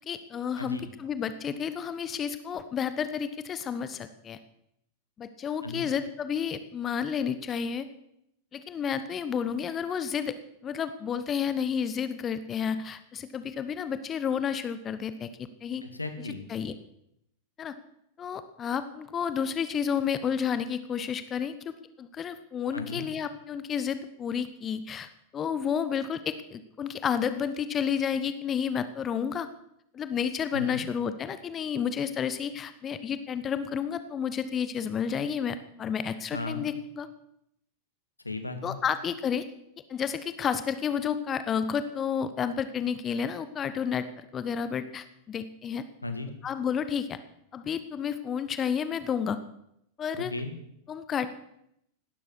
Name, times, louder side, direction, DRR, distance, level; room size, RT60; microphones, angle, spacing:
voice 1, 0.1-4.4 5.2-7.9 8.5-10.3 10.6-15.8 16.5-16.7 17.6-17.7 18.2-21.5 22.0-29.5 29.9-37.1 38.6-39.4 39.9-45.8 46.4-47.2 47.5-49.4 50.0-50.3 50.9-51.3, left 7 dB, 25° left, 12 dB, 1.1 m, -31 dB
voice 2, 0.6-0.9 5.6-5.9 15.8-16.5 22.7-23.1 30.5-30.8 36.3-36.6 38.2-38.8 46.0-46.3 50.2-50.5, left 2 dB, 85° left, 8 dB, 2.0 m, -36 dB
17.5 x 12.5 x 6.3 m, 0.76 s
figure-of-eight pair, 90°, 0 cm